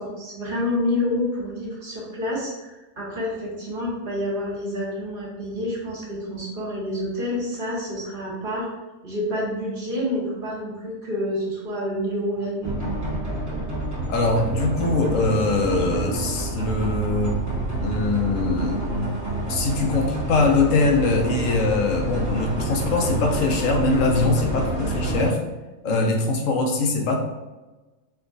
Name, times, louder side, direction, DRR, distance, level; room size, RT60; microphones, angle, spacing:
voice 1, 0.0-8.7 9.0-12.9 25.8-26.0, left 1 dB, 40° right, -5 dB, 1.4 m, -28 dB
sound 1, 12.6-25.3, right 1 dB, 15° right, 1.0 m, -28 dB
voice 2, 14.1-17.3 17.8-18.9 19.5-25.4 25.8-27.2, left 3 dB, 70° left, 2 dB, 1.0 m, -22 dB
4.4 x 2.4 x 3.9 m, 1.2 s
omnidirectional pair, 1.4 m